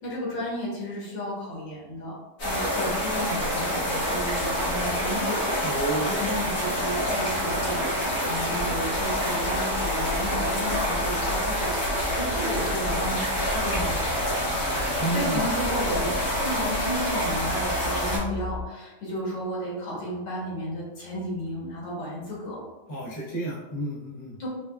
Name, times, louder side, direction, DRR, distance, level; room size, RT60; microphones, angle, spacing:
voice 1, 0.0-2.1 2.4-14.4 15.1-16.1 16.4-22.6 24.4-24.5, left 1 dB, 85° left, -6 dB, 1.9 m, -33 dB
sound 1, 2.4-18.2, equal, 65° left, 1.8 m, -27 dB
voice 2, 5.6-6.3 15.0-15.4 22.9-24.4, right 2 dB, 35° left, -6 dB, 0.7 m, -31 dB
sound 2, 8.5-18.6, equal, 45° right, 1.4 m, -40 dB
4.7 x 2.2 x 2.3 m, 1.1 s
omnidirectional pair, 1.9 m